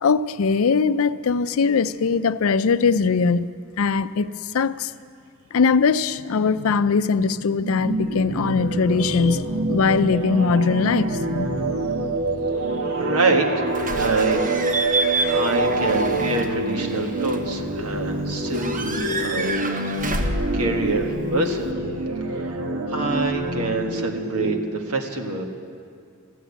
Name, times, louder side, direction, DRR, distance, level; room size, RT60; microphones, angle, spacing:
voice 1, 0.0-3.5 3.8-4.9 5.5-11.7, left 5 dB, 70° left, 0.5 m, -21 dB
sound 1, 7.6-24.5, right 2 dB, 75° right, 1.3 m, -26 dB
voice 2, 13.0-14.4 14.8-19.6 20.2-21.7 22.3-22.6 22.9-25.4, right 3 dB, 90° right, 1.6 m, -26 dB
Slam / Squeak / Alarm, 13.7-21.7, right 2 dB, 40° right, 1.1 m, -29 dB
14.0 x 12.0 x 8.2 m
head